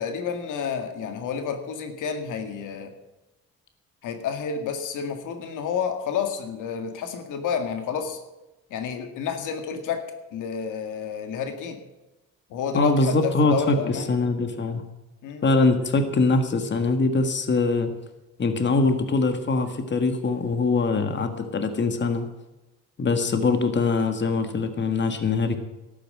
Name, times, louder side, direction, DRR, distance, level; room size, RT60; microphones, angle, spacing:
voice 1, 0.0-2.9 4.0-8.2 8.7-10.0 10.3-11.8 12.5-14.1 15.2-15.4, left 7 dB, 85° left, 6 dB, 1.9 m, -30 dB
voice 2, 12.7-14.8 15.4-17.9 18.4-22.3 23.0-25.6, left 3 dB, 35° left, 7 dB, 1.7 m, -23 dB
12.5 x 9.2 x 7.7 m, 1.0 s
cardioid pair, 90°, 30 cm